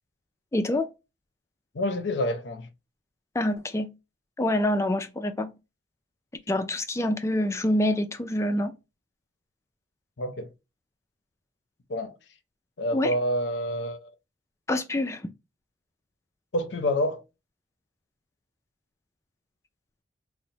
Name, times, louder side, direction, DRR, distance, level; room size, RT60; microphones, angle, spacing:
voice 1, 0.5-0.9 3.3-3.9 4.4-5.5 6.5-8.7 12.9-13.1 14.7-15.2, left 1 dB, 15° left, 0.3 m, -26 dB
voice 2, 1.7-2.7 10.2-10.5 11.9-12.1 12.8-14.1 16.5-17.2, left 1 dB, 70° left, 0.5 m, -28 dB
3.0 x 2.0 x 2.7 m
head